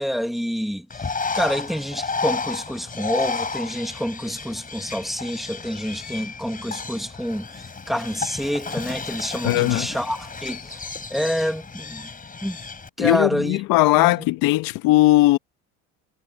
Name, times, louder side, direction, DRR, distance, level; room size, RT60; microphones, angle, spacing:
voice 1, 0.0-10.8 11.1-12.1 12.4-12.6 13.0-13.6 14.0-14.1, equal, ahead, 2.4 m, -28 dB
Bird, 0.9-12.9, left 4 dB, 25° left, 4.6 m, -32 dB
voice 2, 9.4-9.9 13.0-15.4, left 18 dB, 65° left, 1.7 m, -18 dB
supercardioid pair, 85°, 36 cm